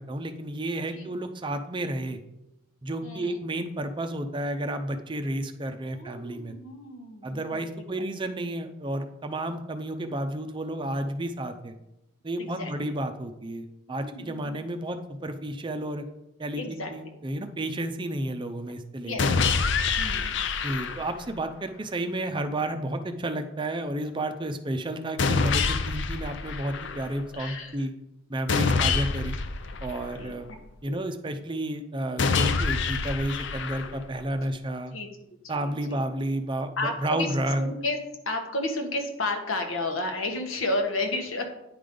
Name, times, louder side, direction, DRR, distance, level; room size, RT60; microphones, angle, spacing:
voice 1, 0.0-2.2 2.8-6.5 7.2-11.7 12.2-16.0 16.4-19.2 20.6-27.9 28.3-29.4 29.8-30.5 30.8-34.9 35.5-37.7, right 1 dB, 25° right, 7 dB, 0.5 m, -31 dB
voice 2, 3.0-3.4 5.9-7.8 10.0-10.2 12.4-12.9 13.9-14.7 16.5-16.9 19.0-19.3 20.0-20.4 27.3-27.8 30.2-30.3 30.8-31.0 34.9-35.1 35.5-36.0 36.8-37.3 37.6-38.0 38.2-41.5, left 2 dB, 85° left, 3 dB, 1.3 m, -32 dB
sound 1, 19.2-21.2 25.2-27.2 28.5-30.5 32.2-34.2, left 4 dB, 60° left, 0.5 m, -26 dB
9.5 x 5.1 x 3.8 m, 0.89 s
head